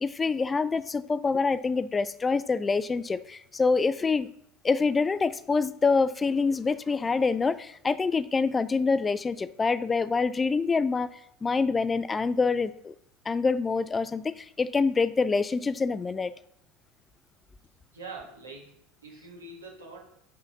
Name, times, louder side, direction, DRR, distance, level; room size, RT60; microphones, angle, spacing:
voice 1, 0.0-4.3 4.6-12.9 13.3-16.3, left 4 dB, 20° left, 15 dB, 0.4 m, -26 dB
voice 2, 17.9-20.2, right 3 dB, 90° right, -1 dB, 1.4 m, -44 dB
5.6 x 3.9 x 5.6 m, 0.71 s
hypercardioid pair, 80°, 0 cm